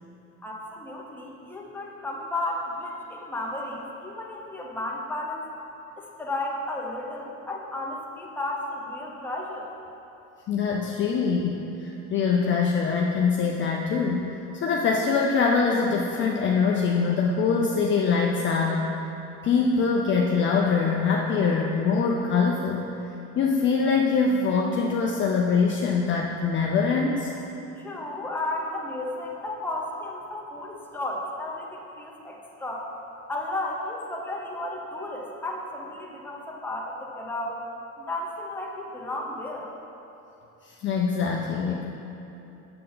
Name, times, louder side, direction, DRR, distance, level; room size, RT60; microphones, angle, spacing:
voice 1, 0.4-5.5 6.0-9.7 27.8-32.9 33.3-37.6 38.0-39.7, left 1 dB, 5° left, -2 dB, 0.8 m, -33 dB
voice 2, 10.5-18.9 19.4-22.8 23.4-27.3 40.8-41.8, left 5 dB, 35° left, -1 dB, 0.5 m, -23 dB
7.3 x 6.8 x 3.9 m, 3.0 s
cardioid pair, 135°, 35 cm